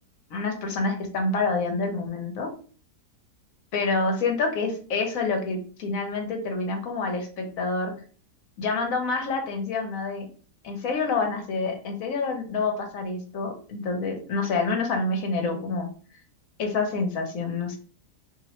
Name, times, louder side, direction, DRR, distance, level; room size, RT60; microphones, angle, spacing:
voice 1, 0.3-2.5 3.7-7.9 8.6-10.3 10.6-15.9 16.6-17.8, left 3 dB, 65° left, 4 dB, 1.0 m, -27 dB
2.9 x 2.7 x 2.9 m, 0.41 s
omnidirectional pair, 1.7 m